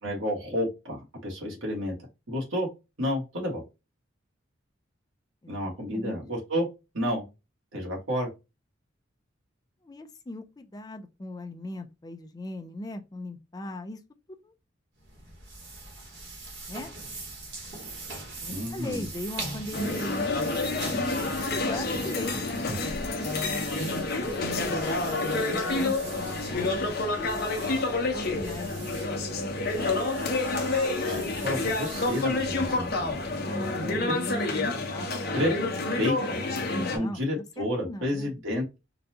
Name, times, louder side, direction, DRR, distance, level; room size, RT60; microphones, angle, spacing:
voice 1, 0.0-1.9 2.3-2.7 3.0-3.6 5.5-6.7 6.9-7.2 7.7-8.3 18.5-19.0 31.1-33.2 33.8-34.2 35.3-36.4 36.9-38.8, equal, 85° right, 1.4 m, -30 dB
voice 2, 5.4-6.2 9.8-14.0 14.4-14.5 16.7-16.9 18.4-22.9 24.2-24.4 24.6-27.5 28.1-29.3 33.4-36.1 36.7-38.3, left 1 dB, 20° left, 0.5 m, -39 dB
sound 1, 15.0-33.4, right 2 dB, 65° right, 1.3 m, -42 dB
sound 2, 19.7-37.0, left 2 dB, 55° left, 0.7 m, -29 dB
3.9 x 2.3 x 2.7 m
head